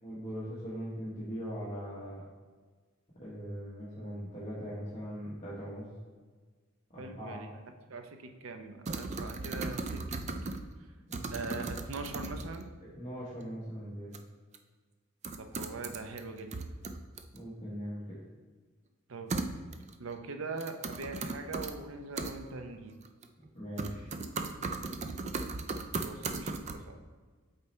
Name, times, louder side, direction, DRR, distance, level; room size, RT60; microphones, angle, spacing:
voice 1, 0.0-2.2 3.2-5.9 6.9-7.4 11.1-11.3 12.8-14.1 17.3-18.2 23.5-24.1, equal, 30° left, -9 dB, 1.3 m, -40 dB
voice 2, 7.0-7.5 7.9-10.2 11.3-12.7 15.4-16.6 19.1-19.3 20.0-23.0 25.7-27.0, right 3 dB, 75° right, 6 dB, 0.7 m, -42 dB
sound 1, 8.8-10.7 11.1-12.6 14.1-14.2 14.5-14.6 15.2-16.2 16.5-17.4 19.3-19.9 20.6-21.7 22.2-22.3 23.0-23.5 23.8-26.7, right 3 dB, 35° right, 0.4 m, -37 dB
8.2 x 4.2 x 3.2 m, 1.4 s
head